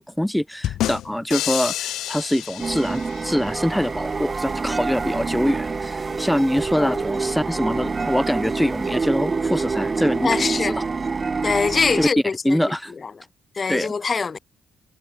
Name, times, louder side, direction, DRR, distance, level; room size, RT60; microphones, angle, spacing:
voice 1, 0.0-10.7 12.0-12.1 12.4-12.9 13.7-13.9, equal, 5° left, 0.7 m, -24 dB
sound 1, 0.6-3.5, left 13 dB, 80° left, 1.9 m, -28 dB
sound 2, 2.6-12.1, right 4 dB, 30° right, 3.3 m, -26 dB
voice 2, 10.2-10.8 11.4-12.6 13.5-14.4, left 5 dB, 35° left, 1.0 m, -23 dB
cardioid pair, 90°, 0 cm